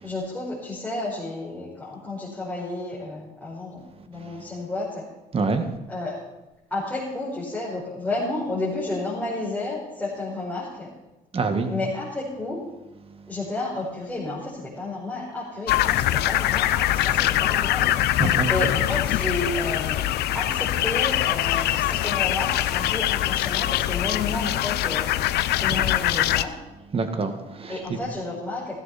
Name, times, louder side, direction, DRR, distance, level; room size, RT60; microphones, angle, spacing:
voice 1, 0.0-5.0 5.9-6.2 6.7-10.9 11.7-12.6 13.3-17.9 18.4-20.1 20.3-25.1 25.6-26.5 27.7-28.8, left 2 dB, 5° left, -7 dB, 5.3 m, -31 dB
voice 2, 5.3-5.7 11.3-11.7 18.2-18.5 26.9-28.0, right 4 dB, 35° right, 7 dB, 1.9 m, -26 dB
sound 1, 15.7-26.4, left 14 dB, 75° left, 0.7 m, -23 dB
16.0 x 14.5 x 4.3 m, 1.0 s
cardioid pair, 110°, 17 cm